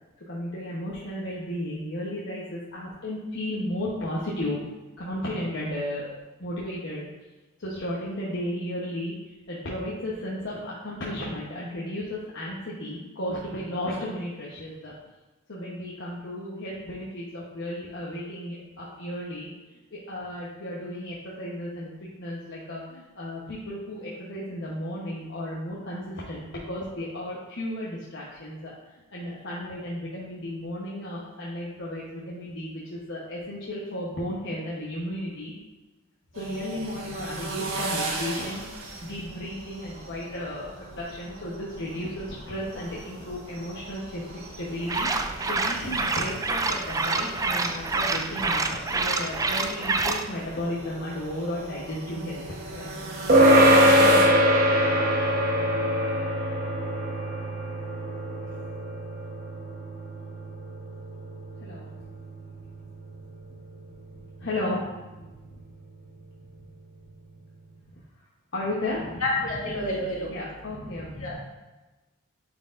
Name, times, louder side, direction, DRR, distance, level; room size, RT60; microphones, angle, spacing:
voice 1, 0.3-4.6 5.0-6.1 6.4-7.1 7.6-14.9 15.5-35.5 36.3-52.4 52.7-52.9 61.6-61.9 64.4-65.1 68.5-69.2 70.3-71.3, left 1 dB, 55° left, -6 dB, 1.0 m, -34 dB
sound 1, 36.3-54.2, right 2 dB, 80° right, 1.4 m, -38 dB
sound 2, 44.9-50.2, right 3 dB, 15° right, 0.3 m, -27 dB
sound 3, 53.3-63.0, equal, 45° right, 1.1 m, -23 dB
voice 2, 69.2-70.3 70.8-71.3, left 1 dB, 75° left, -5 dB, 2.1 m, -29 dB
9.2 x 4.6 x 2.5 m, 1.1 s
head